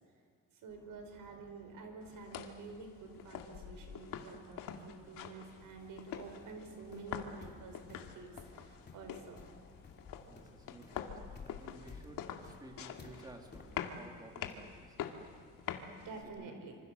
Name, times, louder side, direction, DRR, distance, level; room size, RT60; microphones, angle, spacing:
voice 1, 0.5-9.8 10.2-10.5 16.0-16.8, right 4 dB, 80° right, 5 dB, 5.3 m, -49 dB
sound 1, 0.7-10.0, left 2 dB, 10° left, 5.0 m, -66 dB
sound 2, 2.0-16.2, left 8 dB, 80° left, 2.2 m, -46 dB
sound 3, 5.8-13.7, left 4 dB, 30° left, 2.8 m, -56 dB
voice 2, 10.3-15.0 16.2-16.6, right 1 dB, 10° right, 2 dB, 2.6 m, -54 dB
26.5 x 26.0 x 6.7 m, 2.3 s
cardioid pair, 180°, 33 cm